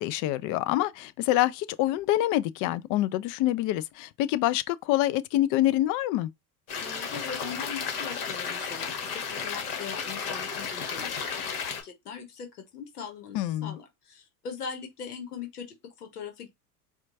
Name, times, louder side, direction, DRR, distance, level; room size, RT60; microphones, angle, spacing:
voice 1, 0.0-6.3 13.3-13.8, left 14 dB, 45° left, 0.4 m, -26 dB
sound 1, 6.7-11.8, left 6 dB, 65° left, 1.5 m, -33 dB
voice 2, 6.8-16.5, left 6 dB, 85° left, 1.0 m, -41 dB
4.3 x 2.3 x 2.6 m
hypercardioid pair, 85°, 45 cm